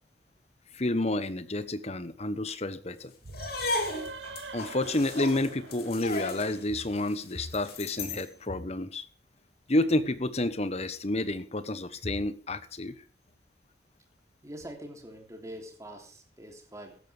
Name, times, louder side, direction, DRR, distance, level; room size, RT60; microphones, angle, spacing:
voice 1, 0.7-3.1 4.5-9.0 9.7-12.9, left 1 dB, 35° left, 13 dB, 1.1 m, -30 dB
sound 1, 3.2-6.8, right 3 dB, 85° right, 1.3 m, -43 dB
sound 2, 3.3-8.3, left 2 dB, 55° left, 2.8 m, -35 dB
voice 2, 14.4-17.0, equal, 15° right, 3 dB, 3.2 m, -44 dB
16.0 x 12.5 x 3.5 m, 0.39 s
head